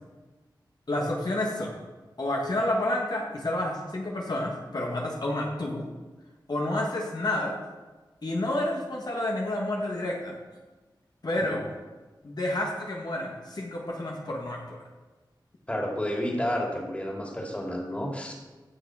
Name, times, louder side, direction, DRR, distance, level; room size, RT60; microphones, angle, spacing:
voice 1, 0.9-1.7 2.2-5.8 6.5-7.6 8.2-10.4 11.2-11.6 12.2-14.8, left 1 dB, 55° left, -1 dB, 1.7 m, -29 dB
voice 2, 15.7-18.3, equal, 15° left, -1 dB, 2.8 m, -30 dB
15.5 x 6.1 x 4.9 m, 1.2 s
wide cardioid pair, 70°, 8 cm